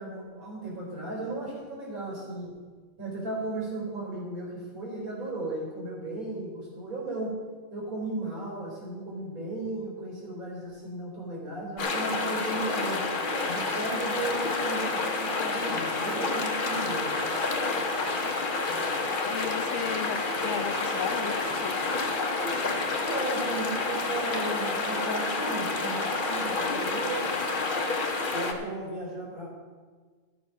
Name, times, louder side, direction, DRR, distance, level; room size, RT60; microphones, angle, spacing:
voice 1, 0.0-2.6 3.0-7.4 7.7-13.0 13.5-17.3 23.0-27.3 28.3-29.5, right 2 dB, 75° right, -3 dB, 4.6 m, -35 dB
sound 1, 11.8-28.5, left 3 dB, 40° left, 1.2 m, -29 dB
voice 2, 19.2-21.7, left 7 dB, 60° left, 7 dB, 1.0 m, -35 dB
13.0 x 7.2 x 5.9 m, 1.5 s
omnidirectional pair, 1.5 m